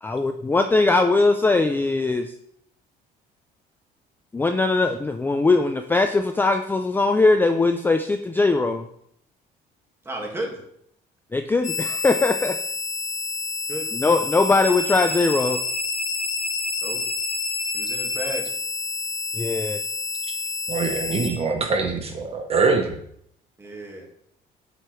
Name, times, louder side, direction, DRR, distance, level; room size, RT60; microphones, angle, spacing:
voice 1, 0.0-2.3 4.3-8.8 11.3-12.5 13.9-15.6 19.4-19.8, left 3 dB, 10° left, 6 dB, 0.3 m, -20 dB
voice 2, 10.0-10.6 13.7-14.0 16.8-17.0 17.7-18.5 23.6-24.1, right 1 dB, 15° right, 0 dB, 1.6 m, -33 dB
sound 1, 11.6-21.3, left 4 dB, 45° left, 1.8 m, -28 dB
voice 3, 20.7-23.0, right 4 dB, 35° right, 3 dB, 0.8 m, -23 dB
8.0 x 4.5 x 3.1 m, 0.71 s
cardioid pair, 110°, 17 cm